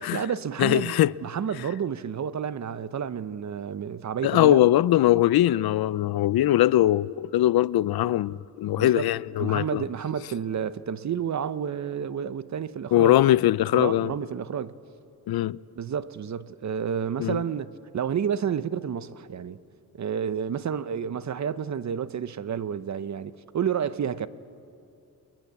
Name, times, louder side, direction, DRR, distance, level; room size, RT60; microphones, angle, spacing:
voice 1, 0.0-4.6 8.8-9.1 9.4-13.1 13.7-14.7 15.8-19.6 19.9-24.3, right 8 dB, 50° right, 0.8 m, -30 dB
voice 2, 0.6-1.1 4.2-9.8 12.9-14.1 15.3-15.6 17.2-17.4, left 14 dB, 75° left, 0.5 m, -21 dB
29.5 x 21.5 x 8.2 m
cardioid pair, 110°, 37 cm